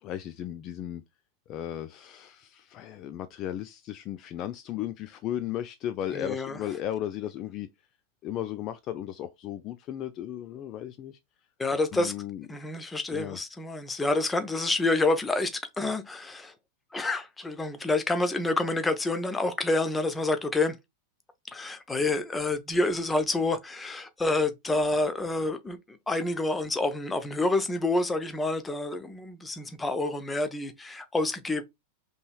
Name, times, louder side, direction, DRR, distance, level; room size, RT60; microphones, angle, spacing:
voice 1, 0.0-1.0 1.5-7.7 8.2-11.2 11.7-12.5 13.1-13.4, left 11 dB, 35° left, 0.3 m, -35 dB
voice 2, 6.1-6.6 11.6-12.1 12.5-15.5 15.8-16.5 16.9-20.8 21.5-31.6, left 2 dB, 10° left, 0.7 m, -28 dB
5.3 x 3.1 x 2.3 m
figure-of-eight pair, 90°, 0 cm